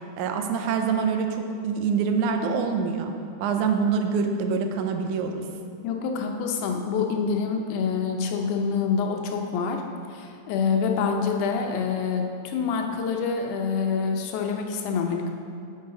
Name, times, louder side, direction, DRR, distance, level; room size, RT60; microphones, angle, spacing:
voice 1, 0.2-3.1 3.4-5.4, right 5 dB, 80° right, 5 dB, 2.0 m, -25 dB
voice 2, 5.8-9.8 10.1-15.3, left 5 dB, 85° left, 3 dB, 2.2 m, -26 dB
9.4 x 6.3 x 3.8 m, 2.4 s
omnidirectional pair, 3.5 m